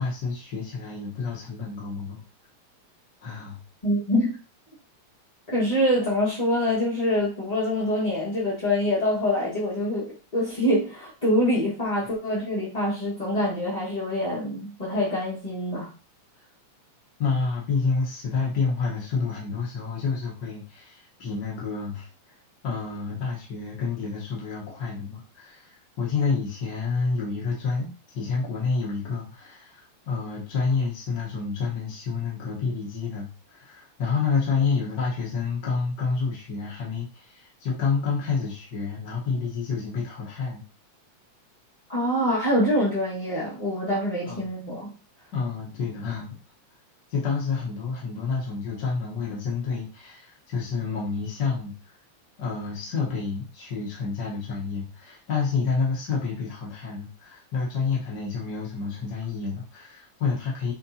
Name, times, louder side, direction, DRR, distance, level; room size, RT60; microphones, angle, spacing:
voice 1, 0.0-2.2 3.2-3.6 17.2-22.3 22.6-40.6 44.2-44.5 45.3-46.4 47.1-51.9 52.4-60.7, left 4 dB, 50° left, -4 dB, 1.4 m, -29 dB
voice 2, 3.8-4.3 5.5-15.9 41.9-44.9, left 1 dB, 20° left, -8 dB, 1.2 m, -25 dB
9.5 x 3.6 x 2.8 m, 0.35 s
omnidirectional pair, 3.3 m